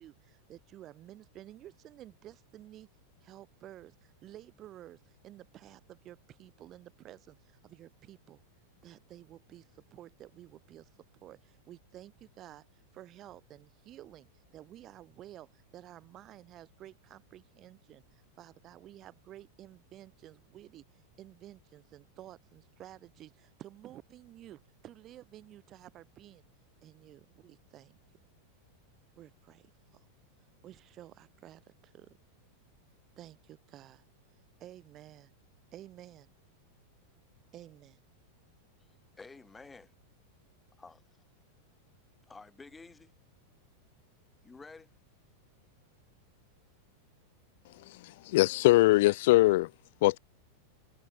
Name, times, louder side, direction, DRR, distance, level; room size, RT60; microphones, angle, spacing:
voice 1, 0.0-2.9 3.2-8.4 8.8-10.9 11.2-26.4 26.8-28.0 29.2-30.1 30.6-32.2 33.2-34.0 34.6-35.3 35.7-36.3 37.5-38.0, right 13 dB, 30° right, 6.1 m, -52 dB
voice 2, 38.8-39.9 40.8-41.0 42.3-43.1 44.4-44.9, left 4 dB, 10° left, 6.0 m, -51 dB
voice 3, 48.3-49.7 50.0-50.2, left 19 dB, 50° left, 0.5 m, -22 dB
figure-of-eight pair, 90°, 0 cm